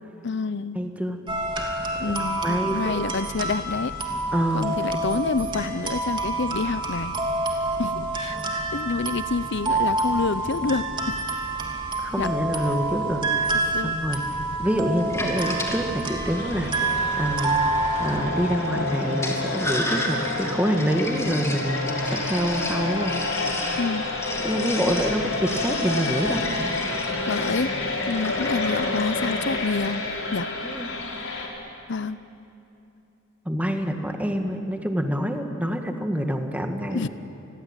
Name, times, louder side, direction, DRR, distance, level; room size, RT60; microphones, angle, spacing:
voice 1, 0.2-0.8 2.0-4.0 4.5-7.1 7.8-11.2 12.2-12.3 13.7-13.9 23.8-24.1 27.3-30.0 30.3-30.5 31.9-32.2 36.9-37.1, left 4 dB, 60° left, 15 dB, 0.7 m, -28 dB
voice 2, 0.8-1.2 2.0-2.1 2.4-2.9 4.3-4.7 12.0-13.5 13.8-14.3 14.6-16.8 17.2-17.6 18.0-23.1 24.4-26.4 30.6-30.9 33.5-37.0, equal, 5° right, 4 dB, 1.9 m, -26 dB
sound 1, 1.3-18.2, right 2 dB, 25° right, 2.9 m, -28 dB
Sink (filling or washing), 15.0-30.0, left 1 dB, 15° left, 3.2 m, -34 dB
sound 2, 16.3-31.5, left 2 dB, 85° left, 5.5 m, -29 dB
29.0 x 21.5 x 9.1 m, 2.9 s
head